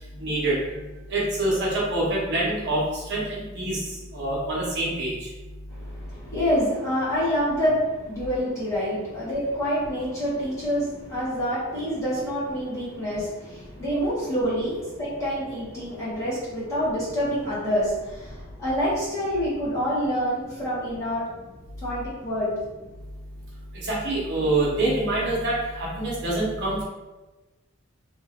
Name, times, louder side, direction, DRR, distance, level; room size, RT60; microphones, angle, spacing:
voice 1, 0.2-0.5 1.1-2.8 3.1-3.8 4.1-5.1 23.9-25.5 26.0-26.8, right 2 dB, 55° right, -6 dB, 0.9 m, -25 dB
voice 2, 5.7-21.3 21.8-22.5, equal, 15° left, -10 dB, 1.2 m, -27 dB
2.9 x 2.6 x 2.9 m, 1.1 s
head